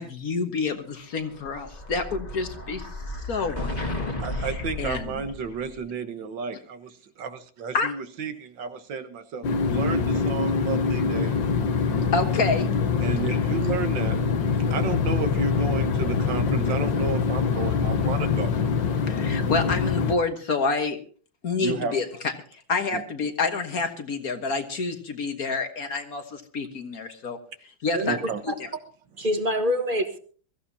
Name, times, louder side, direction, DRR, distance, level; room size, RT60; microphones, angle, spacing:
voice 1, 0.0-2.9 3.3-4.1 4.4-4.5 4.8-5.2 7.7-7.9 12.1-12.7 13.3-13.4 19.1-21.0 21.4-22.1 22.7-27.4 27.8-28.2 28.4-28.7, left 4 dB, 55° left, 7 dB, 1.7 m, -28 dB
Explosion, 1.1-5.8, left 1 dB, 25° left, 1.8 m, -34 dB
voice 2, 4.2-11.4 13.0-14.2 14.7-18.6 21.6-22.0 22.9-23.0 28.0-28.4, right 5 dB, 80° right, 9 dB, 2.0 m, -32 dB
sound 1, 9.4-20.2, left 5 dB, 80° left, 1.9 m, -24 dB
voice 3, 27.9-28.5 29.2-30.2, equal, 30° right, 7 dB, 1.5 m, -26 dB
23.0 x 14.5 x 2.8 m, 0.42 s
omnidirectional pair, 2.0 m